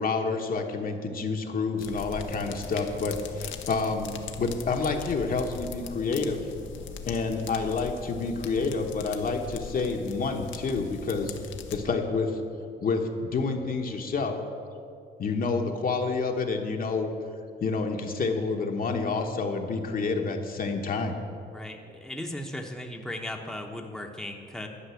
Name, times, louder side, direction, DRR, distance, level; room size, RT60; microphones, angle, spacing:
voice 1, 0.0-6.4 7.1-11.3 11.7-12.4 12.8-14.4 15.2-17.1 17.6-21.2, left 4 dB, 45° left, 3 dB, 1.1 m, -28 dB
sound 1, 1.8-11.8, left 6 dB, 75° left, 0.9 m, -41 dB
voice 2, 21.5-24.7, left 1 dB, ahead, 2 dB, 1.0 m, -37 dB
11.5 x 5.4 x 8.3 m, 2.5 s
cardioid pair, 90°, 20 cm